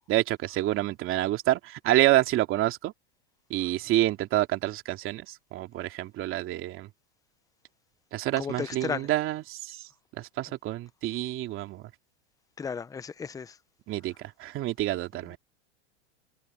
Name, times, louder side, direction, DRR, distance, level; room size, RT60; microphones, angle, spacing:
voice 1, 0.1-2.9 3.5-6.9 8.1-11.9 13.9-15.4, right 15 dB, 40° right, 2.7 m, -28 dB
voice 2, 8.4-9.1 12.6-13.5, left 6 dB, 10° left, 0.7 m, -34 dB
supercardioid pair, 135°, 34 cm